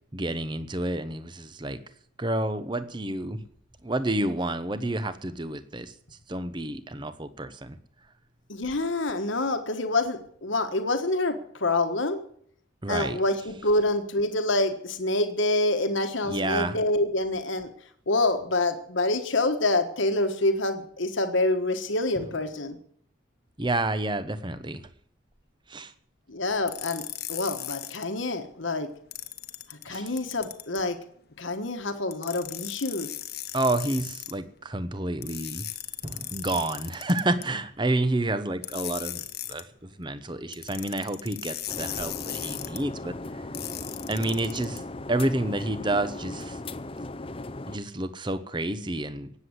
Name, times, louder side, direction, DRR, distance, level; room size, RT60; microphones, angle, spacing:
voice 1, 0.1-1.8 2.2-3.4 3.8-5.9 6.3-7.8 12.8-13.2 16.2-16.8 23.6-24.8 25.7-25.9 29.9-30.1 33.5-35.7 36.0-39.2 39.5-43.4 44.1-44.8 45.1-46.6 47.7-49.3, right 1 dB, 25° right, 13 dB, 0.9 m, -29 dB
voice 2, 8.5-12.2 12.9-17.7 18.1-22.8 26.3-28.9 29.7-31.0 31.4-33.1, left 2 dB, 75° left, 7 dB, 1.4 m, -27 dB
sound 1, 26.7-28.0 29.1-30.8 32.1-34.3 35.2-37.4 38.6-39.6 40.5-42.8 43.5-44.8, left 13 dB, 50° left, 1.1 m, -37 dB
sound 2, 41.7-47.8, left 2 dB, 30° left, 0.6 m, -37 dB
18.0 x 7.8 x 8.0 m, 0.62 s
head